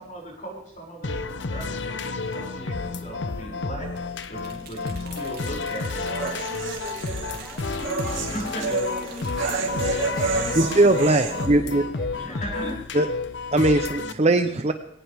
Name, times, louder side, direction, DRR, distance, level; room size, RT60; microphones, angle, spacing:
voice 1, 0.0-6.6 8.1-8.8 12.0-12.8 14.0-14.2, right 1 dB, 40° left, -2 dB, 6.4 m, -37 dB
sound 1, 1.0-14.1, left 4 dB, 60° left, 0.9 m, -31 dB
sound 2, 4.2-9.7, right 6 dB, 50° right, 2.9 m, -46 dB
sound 3, 5.1-11.5, right 3 dB, 75° right, 2.8 m, -30 dB
voice 2, 7.4-12.7, equal, ahead, -6 dB, 7.7 m, -40 dB
voice 3, 10.6-11.8 12.9-13.1 13.5-14.7, right 2 dB, 35° right, 8 dB, 0.7 m, -20 dB
20.0 x 18.5 x 3.6 m, 0.78 s
head